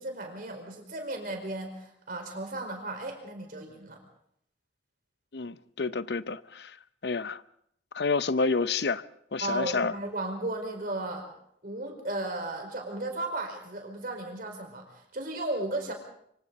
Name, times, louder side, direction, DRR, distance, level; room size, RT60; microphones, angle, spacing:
voice 1, 0.0-4.0 9.4-11.3 11.6-15.9, right 2 dB, 50° right, 4.9 m, -35 dB
voice 2, 5.3-6.7 7.0-7.4 7.9-9.0 9.3-9.9, left 4 dB, 65° left, 0.7 m, -29 dB
25.0 x 25.0 x 4.1 m
head